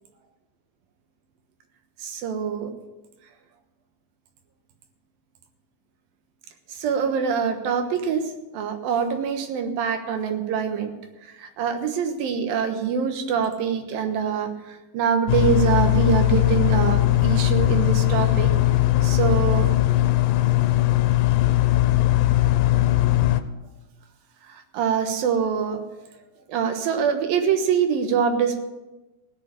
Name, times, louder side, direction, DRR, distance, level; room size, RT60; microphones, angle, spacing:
voice 1, 2.0-2.7 6.8-8.2 8.5-10.9 11.4-18.5 19.0-19.7 24.5-25.8 26.5-28.6, right 7 dB, 85° right, 6 dB, 3.1 m, -24 dB
sound 1, 15.3-23.4, left 15 dB, 85° left, 2.4 m, -19 dB
16.5 x 6.7 x 8.3 m, 1.1 s
omnidirectional pair, 4.0 m